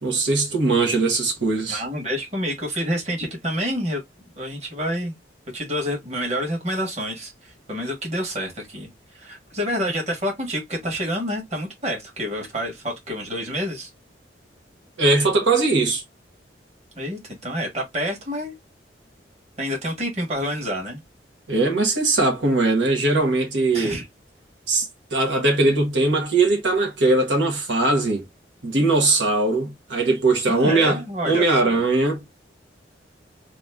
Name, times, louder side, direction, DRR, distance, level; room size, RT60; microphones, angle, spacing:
voice 1, 0.0-1.8 15.0-16.0 21.5-24.0 24.7-28.2 28.6-32.2, right 2 dB, 85° right, 1.2 m, -20 dB
voice 2, 1.7-4.0 4.3-5.1 5.5-8.9 9.1-13.9 17.0-18.5 19.6-21.0 23.7-24.1 30.5-31.9, equal, 35° right, 1.3 m, -28 dB
3.0 x 2.5 x 3.3 m
head